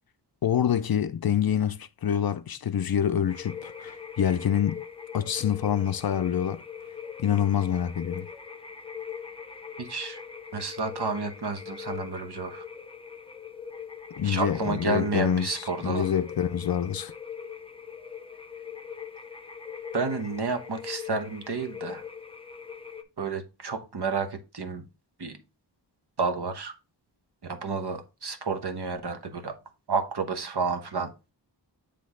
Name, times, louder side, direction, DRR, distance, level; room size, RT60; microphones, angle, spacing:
voice 1, 0.4-4.8 5.1-6.6 7.2-8.3 14.2-17.1, left 9 dB, 55° left, 0.5 m, -26 dB
sound 1, 3.3-23.0, left 7 dB, 15° left, 0.7 m, -41 dB
voice 2, 9.8-10.2 10.5-12.6 14.2-16.1 19.9-22.0 23.2-24.9 25.2-25.4 26.2-26.7 27.4-29.5 29.9-31.1, right 4 dB, 65° right, 1.1 m, -30 dB
7.7 x 3.4 x 3.7 m
wide cardioid pair, 85°, 43 cm